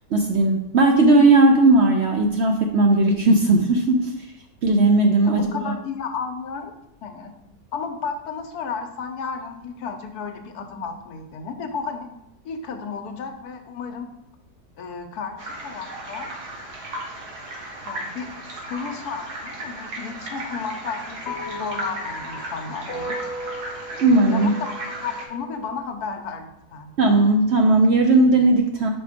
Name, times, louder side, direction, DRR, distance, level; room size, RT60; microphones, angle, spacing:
voice 1, 0.1-4.1 4.6-5.7 24.0-24.5 27.0-28.9, right 2 dB, 60° right, 3 dB, 0.7 m, -17 dB
voice 2, 5.2-7.4 7.7-12.1 12.4-14.1 14.8-16.3 17.8-18.3 18.7-23.2 24.3-26.9, left 5 dB, 80° left, 6 dB, 1.3 m, -33 dB
sound 1, 15.4-25.3, right 1 dB, 85° right, 1.7 m, -35 dB
sound 2, 21.3-25.7, equal, 55° left, 0.8 m, -36 dB
5.1 x 4.7 x 5.0 m, 0.83 s
omnidirectional pair, 1.7 m